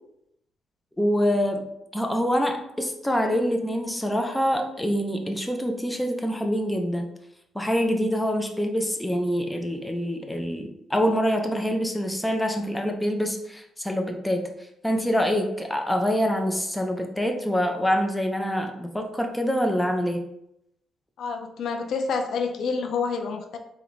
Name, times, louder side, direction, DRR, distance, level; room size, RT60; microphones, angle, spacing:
voice 1, 1.0-7.1 7.5-14.5 14.8-20.2, equal, 5° left, 3 dB, 0.6 m, -25 dB
voice 2, 21.2-23.6, left 5 dB, 75° left, 5 dB, 0.4 m, -28 dB
3.9 x 2.8 x 3.2 m, 0.79 s
cardioid pair, 95°, 0 cm